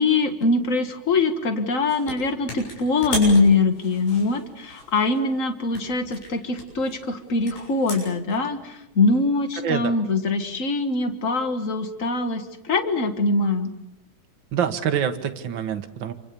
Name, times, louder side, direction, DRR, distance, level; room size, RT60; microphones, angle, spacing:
voice 1, 0.0-13.7, left 3 dB, 45° left, 8 dB, 1.1 m, -23 dB
sound 1, 1.9-2.2 2.5-5.3 5.7-8.4, left 2 dB, 90° left, 8.9 m, -35 dB
voice 2, 9.6-10.0 14.5-16.1, right 8 dB, 60° right, 7 dB, 1.2 m, -26 dB
28.0 x 24.5 x 6.9 m, 0.93 s
omnidirectional pair, 3.9 m